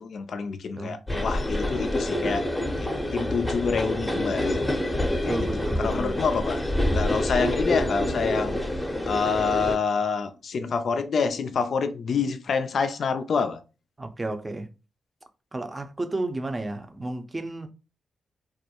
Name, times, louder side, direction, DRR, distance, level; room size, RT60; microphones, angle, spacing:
voice 1, 0.0-2.5 2.8-4.6 5.2-5.5 5.8-6.6 6.9-8.6 9.1-13.6, left 5 dB, 65° left, 0.3 m, -27 dB
sound 1, 1.1-9.8, left 1 dB, 15° left, 0.6 m, -27 dB
voice 2, 5.3-6.2 14.0-14.7 15.5-17.7, right 2 dB, 30° right, 0.5 m, -32 dB
2.3 x 2.1 x 2.8 m
supercardioid pair, 50°, 0 cm